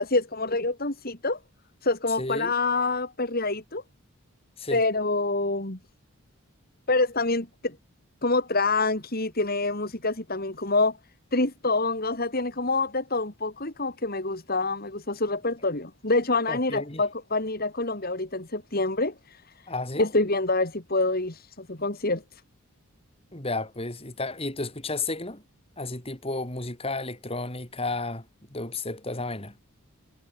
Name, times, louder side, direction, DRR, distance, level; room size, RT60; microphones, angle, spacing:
voice 1, 0.0-1.4 1.8-3.8 4.7-5.8 6.9-7.8 8.2-11.0 11.3-19.1 20.0-22.2, left 3 dB, 45° left, 2.9 m, -26 dB
voice 2, 2.2-2.5 4.6-4.8 16.5-17.0 19.7-20.1 23.3-25.4 25.8-28.3 28.5-29.6, left 2 dB, 25° left, 3.6 m, -32 dB
head